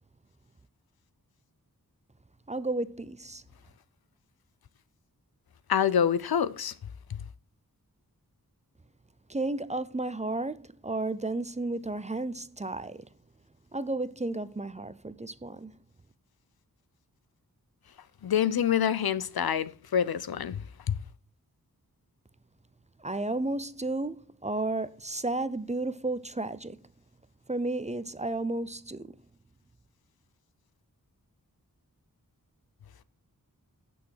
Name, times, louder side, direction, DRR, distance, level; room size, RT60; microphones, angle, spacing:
voice 1, 2.5-3.4 9.3-13.1 13.7-15.7 23.0-26.8 27.5-29.2, right 2 dB, 20° right, 0.5 m, -33 dB
voice 2, 5.7-6.7 18.2-21.0, left 8 dB, 85° left, 0.6 m, -26 dB
8.4 x 6.5 x 4.5 m
wide cardioid pair, 55°, 36 cm